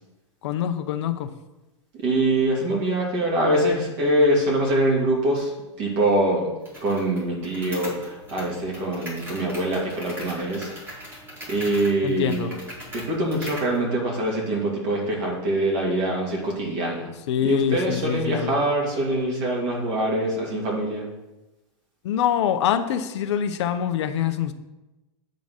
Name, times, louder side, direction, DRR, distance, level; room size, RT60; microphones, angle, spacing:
voice 1, 0.4-1.3 12.0-12.5 17.3-18.6 22.0-24.5, left 9 dB, 65° left, 8 dB, 0.7 m, -25 dB
voice 2, 2.0-5.5 5.8-6.5 6.8-10.7 11.5-12.5 13.1-17.1 17.4-21.0, right 1 dB, 40° right, -2 dB, 2.5 m, -24 dB
sound 1, 6.7-13.8, equal, 15° right, 2.1 m, -40 dB
8.4 x 3.9 x 6.4 m, 1.0 s
supercardioid pair, 160°, 16 cm